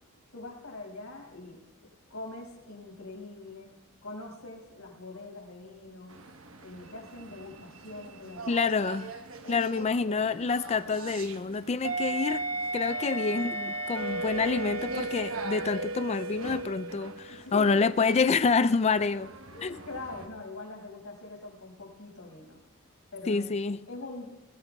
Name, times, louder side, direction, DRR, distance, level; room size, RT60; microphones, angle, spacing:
voice 1, 0.3-1.6 2.1-3.7 4.0-6.2 6.6-8.5 9.4-10.5 17.3-17.8 19.5-22.6 23.1-23.5 23.9-24.3, left 2 dB, 85° left, 5.8 m, -43 dB
sound 1, 6.1-20.3, right 2 dB, 70° right, 1.1 m, -37 dB
voice 2, 8.5-9.1 9.5-12.4 12.7-19.3 19.6-19.7 23.3-23.8, left 4 dB, 30° left, 0.4 m, -27 dB
22.0 x 17.0 x 2.3 m
head